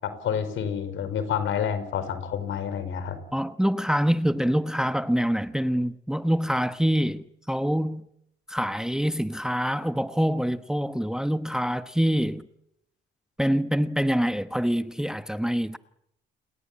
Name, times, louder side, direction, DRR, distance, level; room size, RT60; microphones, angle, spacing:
voice 1, 0.0-3.2, left 8 dB, 75° left, 5.2 m, -29 dB
voice 2, 3.3-8.0 8.5-12.5 13.4-15.8, equal, 5° right, 1.0 m, -25 dB
29.5 x 22.0 x 8.7 m
cardioid pair, 90°, 20 cm